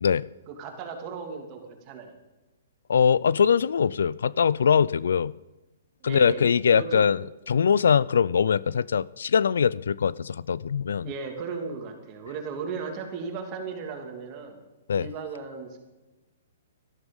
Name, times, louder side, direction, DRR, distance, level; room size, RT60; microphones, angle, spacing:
voice 1, 0.5-2.1 6.0-6.5 6.7-7.1 11.0-14.6 15.0-15.8, right 5 dB, 30° right, 3 dB, 2.8 m, -36 dB
voice 2, 2.9-5.3 6.0-11.1 14.9-15.1, left 7 dB, 80° left, 21 dB, 0.4 m, -22 dB
13.5 x 11.5 x 5.4 m, 1.1 s
hypercardioid pair, 145°, 0 cm